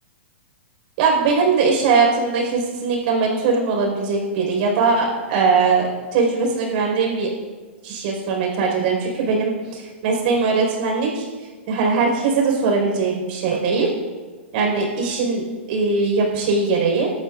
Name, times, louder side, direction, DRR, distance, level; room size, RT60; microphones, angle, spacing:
voice 1, 1.0-7.3 7.8-11.3 11.7-13.9 14.5-17.1, right 4 dB, 50° right, 1 dB, 5.1 m, -20 dB
25.5 x 11.5 x 2.6 m, 1.4 s
hypercardioid pair, 120°, 7 cm